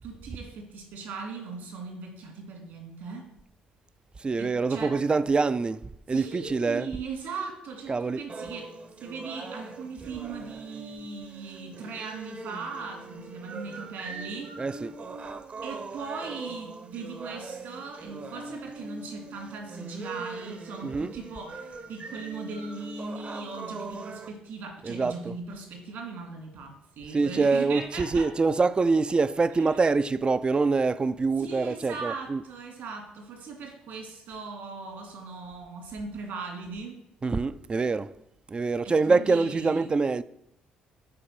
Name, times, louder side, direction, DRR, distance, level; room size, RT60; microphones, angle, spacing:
voice 1, 0.0-3.2 4.4-4.9 6.1-8.7 9.0-14.5 15.6-28.3 29.5-29.9 31.4-37.0 38.8-39.9, right 4 dB, 75° right, 2.9 m, -39 dB
voice 2, 4.2-6.9 7.9-8.2 14.6-14.9 20.8-21.2 24.8-25.4 27.1-32.4 37.2-38.1 38.5-40.2, right 4 dB, 30° right, 0.4 m, -25 dB
sound 1, 8.3-24.3, right 3 dB, 45° right, 0.9 m, -41 dB
6.7 x 4.6 x 6.0 m
hypercardioid pair, 55°, 3 cm